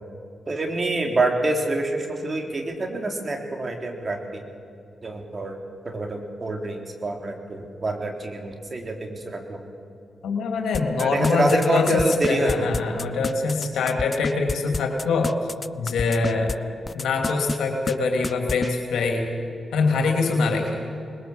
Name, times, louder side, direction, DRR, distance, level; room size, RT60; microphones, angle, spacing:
voice 1, 0.5-4.4 5.0-5.6 5.8-9.6 11.0-12.8, right 2 dB, 45° right, 3 dB, 3.6 m, -26 dB
voice 2, 10.2-15.3 15.8-16.5 16.9-19.3 19.7-20.9, left 4 dB, 85° left, 2 dB, 3.1 m, -24 dB
sound 1, 10.7-16.5 16.9-17.6 17.9-18.0 18.2-18.7, left 3 dB, 40° left, 0.5 m, -28 dB
21.0 x 20.5 x 7.4 m, 2.5 s
supercardioid pair, 45°, 0 cm